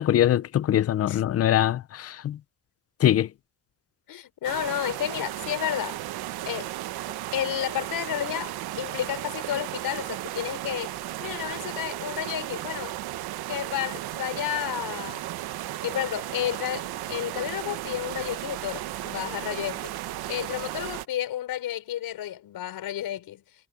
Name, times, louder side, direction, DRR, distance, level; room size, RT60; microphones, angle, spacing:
voice 1, 0.0-2.4 3.0-3.3, left 11 dB, 40° left, 0.6 m, -22 dB
voice 2, 4.1-6.0 6.5-6.7 7.3-13.0 13.5-15.3 15.8-19.9 20.3-23.4, left 12 dB, 70° left, 5.4 m, -31 dB
sound 1, 4.4-21.1, right 14 dB, 85° right, 1.1 m, -35 dB
cardioid pair, 160°, 37 cm